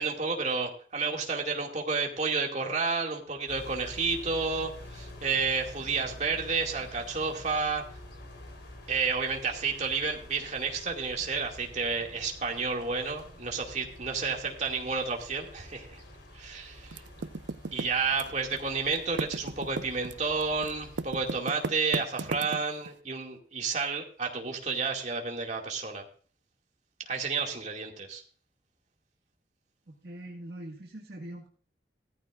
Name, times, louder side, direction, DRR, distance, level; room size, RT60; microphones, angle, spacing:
voice 1, 0.0-7.9 8.9-16.0 16.3-17.0 17.7-26.0 27.1-28.2, right 4 dB, 40° right, 0 dB, 2.2 m, -31 dB
sound 1, 3.5-21.4, left 1 dB, 75° left, 4.0 m, -48 dB
Typing, 16.9-18.6 18.9-22.9, right 4 dB, 80° right, 0.6 m, -35 dB
voice 2, 29.9-31.5, right 1 dB, 60° right, -1 dB, 1.7 m, -43 dB
14.5 x 13.5 x 2.5 m, 0.44 s
head